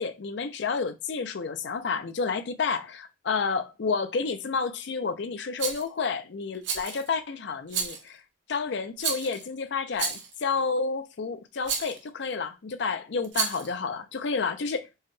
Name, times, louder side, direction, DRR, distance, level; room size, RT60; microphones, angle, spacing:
voice 1, 0.0-8.2 8.5-14.9, left 5 dB, 60° left, 0.5 m, -30 dB
Rattle, 5.6-5.9 6.6-7.1 7.7-8.1 9.0-9.4 10.0-10.4 11.6-12.0 13.2-13.7, right 6 dB, 65° right, 0.7 m, -31 dB
4.7 x 2.2 x 3.1 m
head